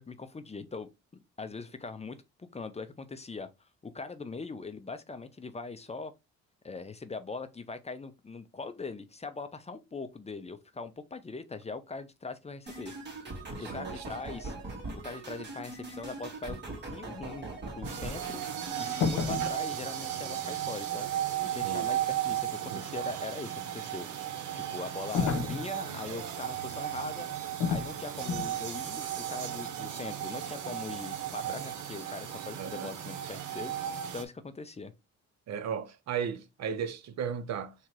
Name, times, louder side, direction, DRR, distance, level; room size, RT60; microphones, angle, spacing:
voice 1, 0.0-3.5 3.8-6.1 6.6-12.9 13.6-14.6 14.9-16.6 16.9-18.4 18.8-21.1 21.4-24.1 24.5-27.3 27.7-33.7 34.1-34.9, left 4 dB, 20° left, 0.6 m, -41 dB
sound 1, 12.7-19.0, right 2 dB, 35° right, 2.3 m, -41 dB
voice 2, 13.5-14.0 21.6-21.9 22.7-22.9 31.4-31.6 32.6-32.9 35.5-37.7, right 7 dB, 60° right, 0.7 m, -36 dB
sound 2, 17.8-34.2, right 11 dB, 80° right, 0.9 m, -35 dB
sound 3, 19.0-19.6 25.1-25.7 27.6-27.9 28.3-28.6, left 5 dB, 75° left, 1.1 m, -29 dB
3.7 x 2.9 x 4.6 m
cardioid pair, 90°, 30 cm